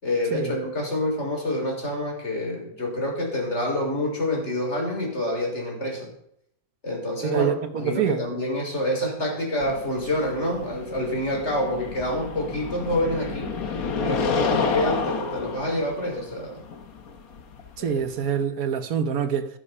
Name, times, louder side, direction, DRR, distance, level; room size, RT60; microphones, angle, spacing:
voice 1, 0.0-6.1 6.8-13.6 14.0-16.6 17.8-18.0, left 1 dB, 50° left, 3.9 m, -27 dB
voice 2, 7.2-8.2 17.8-19.5, right 8 dB, 75° right, 1.4 m, -25 dB
sound 1, 9.6-18.4, left 4 dB, 75° left, 1.7 m, -30 dB
13.5 x 10.0 x 5.5 m
omnidirectional pair, 1.5 m